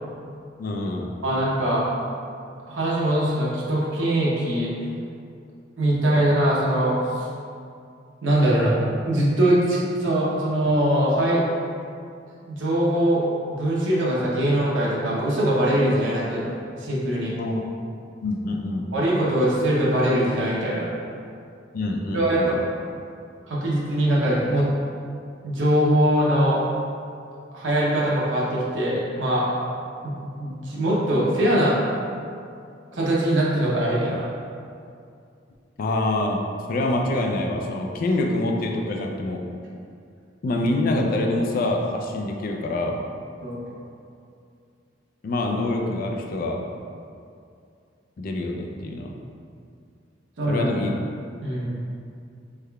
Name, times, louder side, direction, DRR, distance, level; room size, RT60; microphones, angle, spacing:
voice 1, 0.6-1.2 17.4-17.6 18.2-18.9 21.7-22.5 35.8-36.4 36.7-39.4 40.4-43.0 45.2-46.6 48.2-49.1 50.5-51.0, left 2 dB, 50° left, 2 dB, 0.3 m, -25 dB
voice 2, 1.2-1.9 2.7-4.7 5.8-7.2 8.2-11.4 12.4-13.3 13.6-17.3 18.9-20.9 22.1-22.6 23.5-24.7 25.4-26.6 27.5-29.5 30.0-31.7 32.9-34.3 43.4-43.8 50.4-50.7 51.4-51.8, right 1 dB, 85° right, -6 dB, 0.7 m, -22 dB
3.5 x 3.2 x 2.3 m, 2.4 s
head